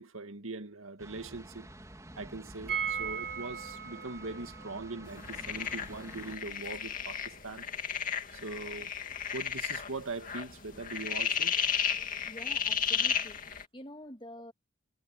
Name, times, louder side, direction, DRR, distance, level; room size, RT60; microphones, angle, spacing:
voice 1, 0.0-1.7 2.2-7.7 8.3-8.9 9.3-11.6, right 3 dB, 90° right, 2.0 m, -41 dB
sound 1, 1.0-6.3, right 1 dB, 15° right, 3.9 m, -49 dB
sound 2, 2.7-8.5 8.7-8.8 9.1-9.2, right 7 dB, 55° right, 6.5 m, -40 dB
sound 3, 5.2-13.6, left 7 dB, 40° left, 2.4 m, -33 dB
voice 2, 12.2-14.5, left 1 dB, 25° left, 2.3 m, -48 dB
head